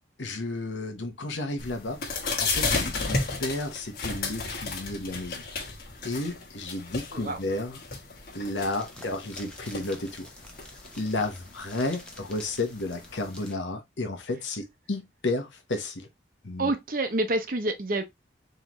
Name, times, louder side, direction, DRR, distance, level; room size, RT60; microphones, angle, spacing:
voice 1, 0.2-2.0 2.2-5.4 6.0-7.8 8.3-10.3 11.0-16.1 16.4-16.7, left 2 dB, 85° left, 1.1 m, -32 dB
sound 1, 1.6-13.5, left 4 dB, 55° left, 1.2 m, -34 dB
sound 2, 8.5-13.6, left 1 dB, 5° left, 0.7 m, -49 dB
voice 2, 16.6-18.0, right 2 dB, 50° right, 0.7 m, -27 dB
3.8 x 3.2 x 3.0 m
head